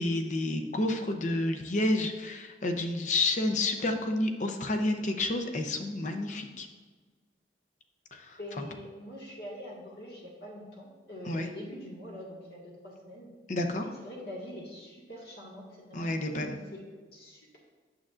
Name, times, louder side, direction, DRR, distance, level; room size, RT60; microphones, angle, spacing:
voice 1, 0.0-6.7 8.1-8.6 11.3-11.5 13.5-13.9 15.9-16.5, left 2 dB, 40° left, 5 dB, 0.6 m, -30 dB
voice 2, 8.4-13.3 13.8-16.8 17.1-17.6, left 1 dB, 60° left, -4 dB, 1.7 m, -44 dB
9.0 x 7.3 x 2.5 m, 1.5 s
head